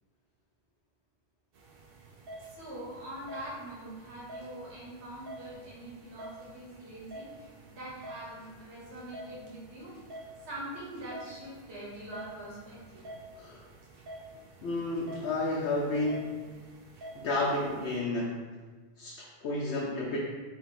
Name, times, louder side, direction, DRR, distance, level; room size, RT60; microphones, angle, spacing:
sound 1, 1.5-18.0, right 1 dB, 65° right, 0.8 m, -49 dB
voice 1, 2.4-10.0 10.4-13.1, right 1 dB, 90° right, -5 dB, 1.4 m, -43 dB
voice 2, 14.6-16.3 17.1-18.5 19.0-20.2, left 2 dB, 90° left, -4 dB, 0.9 m, -31 dB
3.9 x 2.2 x 4.0 m, 1.4 s
omnidirectional pair, 1.1 m